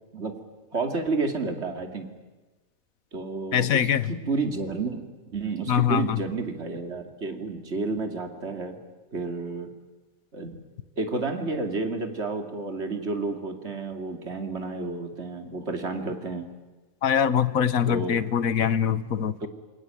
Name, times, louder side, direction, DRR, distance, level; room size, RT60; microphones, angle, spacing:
voice 1, 0.7-2.1 3.1-8.8 9.1-9.7 10.3-10.6 11.0-16.5 17.8-18.2 19.4-19.5, right 3 dB, 50° right, 5 dB, 3.0 m, -31 dB
voice 2, 3.5-4.1 5.7-6.2 17.0-19.5, left 8 dB, 80° left, 15 dB, 1.5 m, -23 dB
27.5 x 23.5 x 9.1 m, 1.2 s
omnidirectional pair, 1.5 m